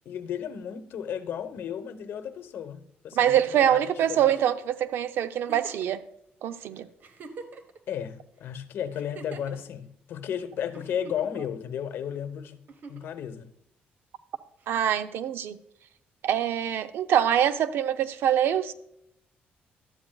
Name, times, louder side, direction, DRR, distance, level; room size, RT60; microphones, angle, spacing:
voice 1, 0.0-4.3 7.9-13.5, left 9 dB, 70° left, 0.9 m, -34 dB
voice 2, 3.2-6.0 6.4-6.9 14.7-15.6 16.2-18.7, right 10 dB, 75° right, 0.6 m, -24 dB
Giggle, 4.0-4.6 5.4-5.9 6.6-6.7 7.0-7.8 8.9-9.6 10.7-11.4 12.7-13.1 14.6-14.7, right 4 dB, 55° right, 1.0 m, -44 dB
12.5 x 8.8 x 2.3 m
cardioid pair, 105°, 4 cm